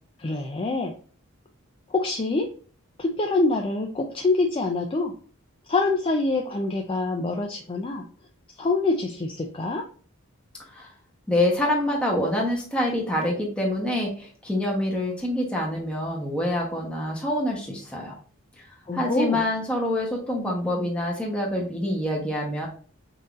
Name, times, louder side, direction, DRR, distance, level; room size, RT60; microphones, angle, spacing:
voice 1, 0.2-0.9 1.9-2.5 3.0-5.1 5.7-8.0 8.6-9.8 18.9-19.4, left 3 dB, 25° left, 1 dB, 0.4 m, -25 dB
voice 2, 11.3-18.2 18.6-18.7 18.9-22.7, left 1 dB, 5° left, -2 dB, 1.0 m, -26 dB
5.4 x 2.7 x 2.4 m, 0.42 s
head